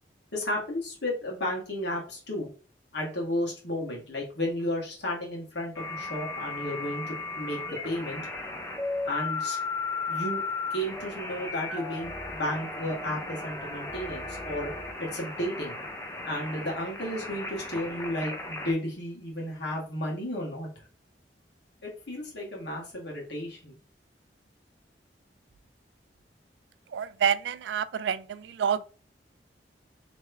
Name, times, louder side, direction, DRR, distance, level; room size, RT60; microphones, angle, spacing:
voice 1, 0.3-2.5 2.9-8.2 9.1-9.6 10.1-10.4 10.7-14.7 15.0-15.8 16.3-20.7 21.8-23.8, left 1 dB, 70° left, 1.7 m, -33 dB
sound 1, 5.8-18.7, left 3 dB, 15° left, 0.6 m, -35 dB
voice 2, 26.9-28.8, right 8 dB, 75° right, 0.3 m, -28 dB
3.4 x 3.2 x 3.3 m
head